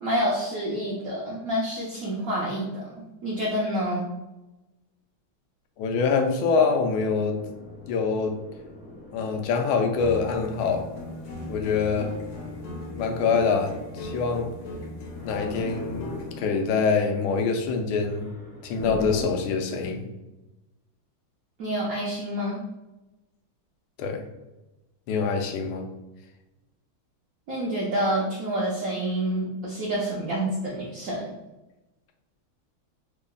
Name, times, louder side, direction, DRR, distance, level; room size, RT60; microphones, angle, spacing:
voice 1, 0.0-2.7 3.2-4.1 21.6-22.6 27.5-31.3, right 1 dB, 70° right, -5 dB, 0.8 m, -28 dB
voice 2, 5.8-7.4 7.9-8.4 9.1-10.9 11.5-12.1 13.0-14.5 15.2-18.3 18.6-20.1 24.0-24.2 25.1-25.8, left 5 dB, 85° left, 4 dB, 1.4 m, -25 dB
sound 1, 7.1-19.3, left 1 dB, 15° right, 0.5 m, -42 dB
sound 2, 10.0-16.4, left 1 dB, 65° left, 0.9 m, -38 dB
3.6 x 2.0 x 3.7 m, 1.0 s
omnidirectional pair, 2.2 m